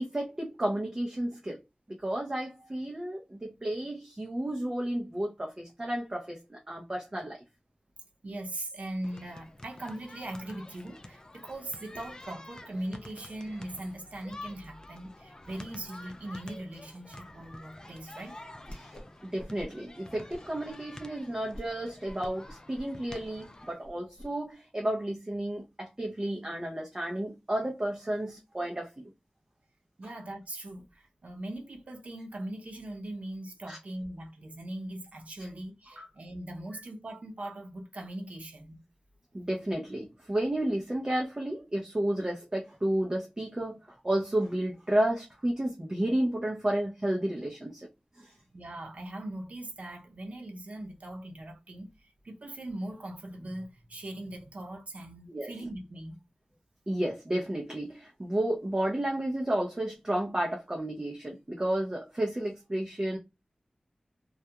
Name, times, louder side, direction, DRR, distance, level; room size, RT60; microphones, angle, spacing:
voice 1, 0.0-1.6 1.9-7.4 18.7-29.1 33.7-33.8 36.0-36.1 39.3-43.8 44.0-47.8 48.2-48.3 55.3-55.5 56.9-63.2, right 1 dB, 30° right, 0.6 m, -32 dB
voice 2, 8.2-18.4 30.0-38.8 48.5-56.2, right 1 dB, 65° right, 0.7 m, -40 dB
sound 1, 9.0-23.7, left 1 dB, 30° left, 0.4 m, -49 dB
Whoosh swoosh swish, 18.6-19.1 19.4-19.9 20.3-20.8 21.1-21.2 21.5-21.7 22.0-24.3, equal, 50° left, 0.9 m, -47 dB
2.3 x 2.2 x 2.8 m
wide cardioid pair, 55°, 2 cm